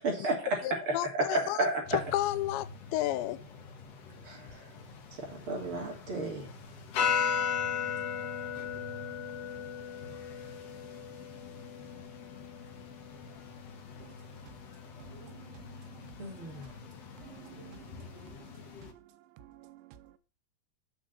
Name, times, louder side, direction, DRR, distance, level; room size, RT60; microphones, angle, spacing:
voice 1, 0.0-0.5 1.3-1.8 4.2-4.6 5.5-6.5 16.2-16.7, right 2 dB, 30° right, 3.4 m, -32 dB
voice 2, 0.6-3.4, left 14 dB, 85° left, 2.9 m, -32 dB
sound 1, 1.8-18.9, left 7 dB, 70° left, 1.5 m, -38 dB
voice 3, 15.0-16.5 17.2-20.2, right 13 dB, 90° right, 3.2 m, -54 dB
8.3 x 6.1 x 5.5 m
omnidirectional pair, 5.1 m